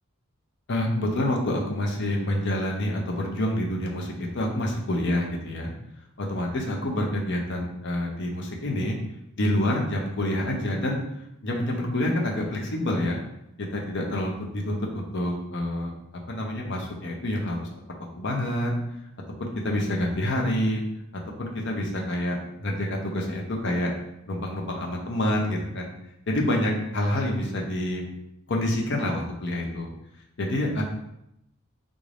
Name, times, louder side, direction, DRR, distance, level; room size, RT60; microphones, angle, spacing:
voice 1, 0.7-5.7 6.2-9.0 9.4-11.0 11.4-13.2 13.7-15.9 16.3-17.7 18.2-18.8 19.4-20.8 21.4-23.9 24.3-25.9 26.3-28.0 28.5-29.9 30.4-30.8, left 1 dB, 55° left, 0 dB, 0.7 m, -27 dB
3.7 x 2.5 x 3.3 m, 0.82 s
head